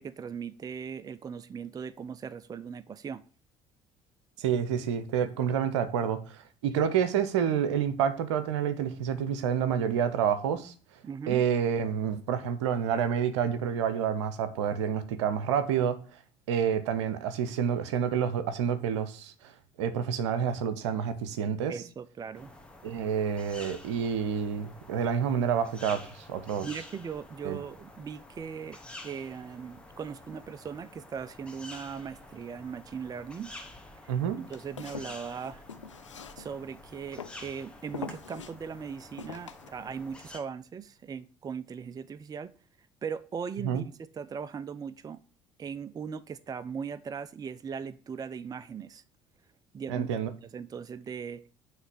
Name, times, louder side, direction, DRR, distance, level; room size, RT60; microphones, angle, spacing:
voice 1, 0.0-3.2 11.0-11.5 21.7-22.5 26.6-28.8 29.0-33.5 34.0-35.6 36.4-42.5 43.0-45.2 45.6-49.0 49.7-50.1 50.4-51.4, right 6 dB, 25° right, 0.4 m, -39 dB
voice 2, 4.4-10.7 11.3-16.0 16.5-19.5 19.8-21.7 22.8-26.7 27.4-27.6 34.1-34.4 43.6-43.8 49.9-50.3, right 8 dB, 75° right, 0.8 m, -28 dB
sound 1, 22.3-40.4, left 2 dB, 5° left, 1.4 m, -49 dB
Walk footsteps, 34.5-36.8 37.2-37.5 37.9-38.5 39.2-39.7, left 6 dB, 90° left, 0.5 m, -43 dB
9.2 x 3.3 x 6.2 m
figure-of-eight pair, 55°, 15 cm